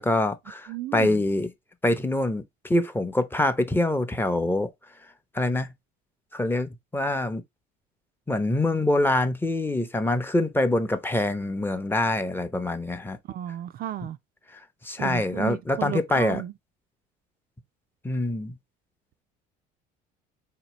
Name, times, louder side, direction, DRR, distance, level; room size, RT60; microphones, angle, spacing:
voice 1, 0.0-1.5 1.8-4.7 5.3-5.7 6.3-7.4 8.3-13.2 14.8-16.4 18.0-18.6, left 1 dB, 10° left, 0.6 m, -25 dB
voice 2, 0.7-1.2 13.3-14.2 15.0-16.5, right 12 dB, 50° right, 0.4 m, -33 dB
4.1 x 2.9 x 2.9 m
supercardioid pair, 85°, 20 cm